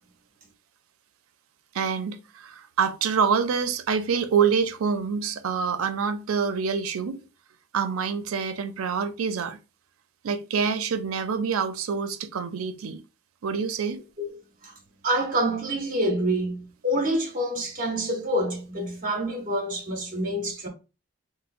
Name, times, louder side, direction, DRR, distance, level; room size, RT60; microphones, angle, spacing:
voice 1, 1.7-7.2 7.7-9.6 10.2-13.0 13.4-14.0, right 6 dB, 85° right, 0.4 m, -26 dB
voice 2, 15.0-20.7, right 1 dB, 40° right, 0.8 m, -27 dB
4.0 x 2.0 x 2.4 m
head